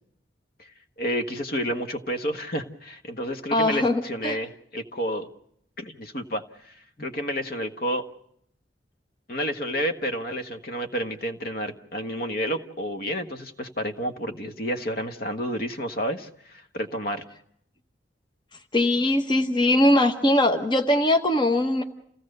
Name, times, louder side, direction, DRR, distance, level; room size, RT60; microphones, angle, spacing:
voice 1, 1.0-5.3 5.8-8.1 9.3-17.2, equal, 50° left, 6 dB, 1.4 m, -30 dB
voice 2, 3.5-4.4 18.7-21.8, left 1 dB, 25° left, 5 dB, 1.1 m, -21 dB
29.0 x 16.5 x 6.6 m, 0.70 s
head